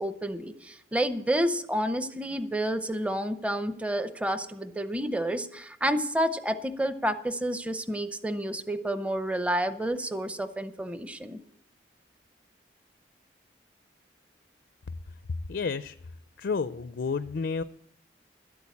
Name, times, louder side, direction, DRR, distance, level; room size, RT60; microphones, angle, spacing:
voice 1, 0.0-11.4, right 1 dB, 5° right, 11 dB, 0.6 m, -30 dB
voice 2, 15.5-16.0 16.4-17.6, left 5 dB, 65° left, 13 dB, 0.4 m, -30 dB
12.0 x 8.5 x 8.3 m, 0.72 s
head